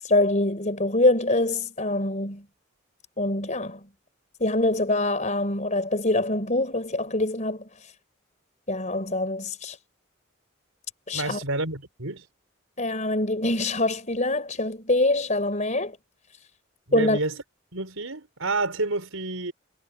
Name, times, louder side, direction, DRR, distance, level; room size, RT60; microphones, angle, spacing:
voice 1, 0.0-2.4 3.2-3.8 4.4-7.9 8.7-9.8 11.1-11.4 12.8-16.0 16.9-17.2, left 2 dB, 35° left, 4.6 m, -24 dB
voice 2, 11.1-12.3 16.9-17.4 17.7-19.5, right 2 dB, 90° right, 4.8 m, -29 dB
head